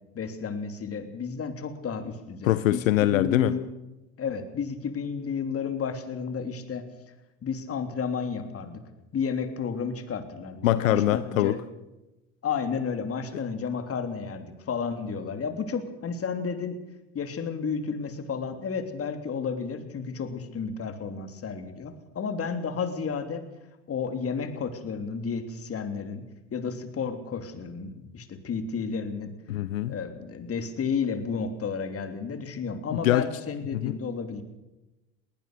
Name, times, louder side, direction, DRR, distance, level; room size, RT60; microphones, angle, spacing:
voice 1, 0.1-3.6 4.2-6.9 7.4-8.8 9.1-11.6 12.4-16.8 17.1-23.4 23.9-26.2 26.5-29.3 29.9-34.4, left 5 dB, 35° left, 7 dB, 3.2 m, -32 dB
voice 2, 2.4-3.5 10.6-11.5 29.5-29.9 33.0-33.2 33.7-33.9, left 14 dB, 85° left, 14 dB, 0.8 m, -23 dB
20.5 x 19.0 x 6.7 m, 1.0 s
hypercardioid pair, 80°, 39 cm